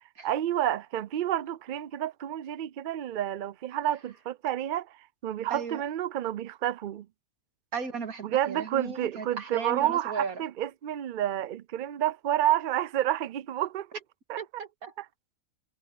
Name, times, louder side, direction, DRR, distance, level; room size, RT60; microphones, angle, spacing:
voice 1, 0.2-7.1 8.2-13.9 14.3-14.4 15.0-15.1, right 11 dB, 60° right, 0.5 m, -30 dB
voice 2, 5.5-5.8 7.7-10.4 14.4-14.9, right 5 dB, 85° right, 2.3 m, -36 dB
omnidirectional pair, 1.5 m